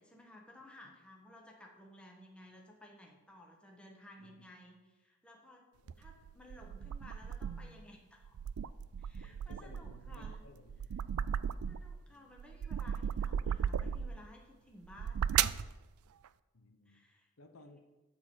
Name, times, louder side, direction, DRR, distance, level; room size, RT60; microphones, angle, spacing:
voice 1, 0.0-5.7 6.0-8.4 9.0-10.4 11.7-15.3 16.8-17.3 17.7-17.8, left 1 dB, 5° left, 0 dB, 1.3 m, -56 dB
sound 1, 5.9-7.8 8.2-12.0 12.4-14.2 14.8-15.7, right 8 dB, 90° right, 0.4 m, -36 dB
voice 2, 9.1-10.9 11.2-11.7 12.1-12.3 16.5-17.0 17.4-17.8, left 2 dB, 75° left, 7 dB, 0.9 m, -59 dB
12.5 x 4.4 x 7.7 m, 1.1 s
head